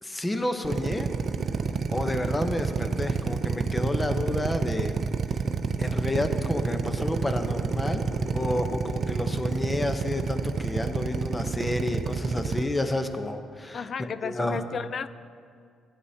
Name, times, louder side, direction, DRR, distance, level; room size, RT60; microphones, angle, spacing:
voice 1, 0.0-1.1 1.9-4.9 5.8-8.0 8.3-14.6, left 1 dB, 15° left, 7 dB, 0.8 m, -30 dB
Drill, 0.6-12.6, right 5 dB, 50° right, 0.5 m, -28 dB
voice 2, 13.7-15.1, left 6 dB, 50° left, 14 dB, 0.3 m, -33 dB
15.5 x 9.6 x 2.8 m, 2.2 s
cardioid pair, 90°, 0 cm